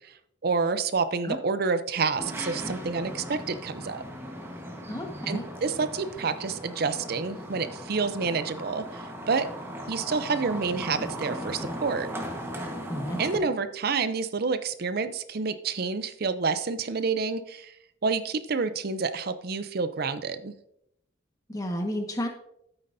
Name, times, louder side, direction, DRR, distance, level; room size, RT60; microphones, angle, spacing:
voice 1, 0.4-4.0 5.3-9.5 9.9-12.1 13.2-17.7 18.0-20.5, right 4 dB, 55° right, 12 dB, 0.6 m, -28 dB
sound 1, 2.1-13.4, equal, 15° right, 1.3 m, -38 dB
voice 2, 4.9-5.4 12.9-13.5 21.5-22.3, equal, 20° left, 2 dB, 1.4 m, -32 dB
12.5 x 8.8 x 2.7 m, 0.76 s
head